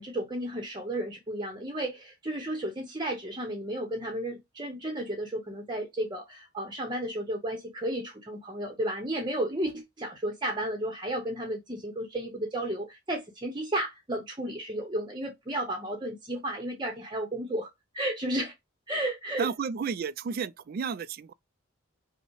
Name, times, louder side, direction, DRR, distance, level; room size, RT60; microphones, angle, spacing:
voice 1, 0.0-17.7 17.9-18.5 18.9-19.5, right 1 dB, 20° right, 0.8 m, -33 dB
voice 2, 19.4-21.3, right 6 dB, 45° right, 0.3 m, -32 dB
5.3 x 2.1 x 4.6 m
head